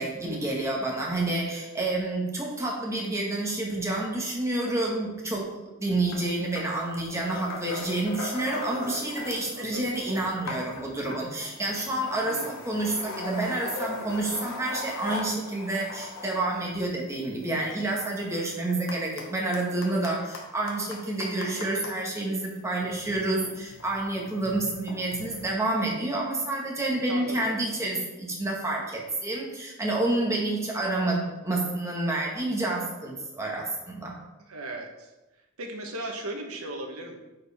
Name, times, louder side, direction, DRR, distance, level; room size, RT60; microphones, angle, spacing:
voice 1, 0.0-12.4 12.6-34.1, right 2 dB, 15° right, -2 dB, 1.6 m, -29 dB
sound 1, 6.1-6.2 6.6-9.6 9.9-22.0 22.7-25.5, left 2 dB, 60° left, 1.2 m, -40 dB
voice 2, 9.5-9.9 12.2-12.6 27.1-27.5 34.4-35.1 35.6-37.2, right 1 dB, 85° right, 3 dB, 1.2 m, -37 dB
9.3 x 4.8 x 3.6 m, 1.0 s
head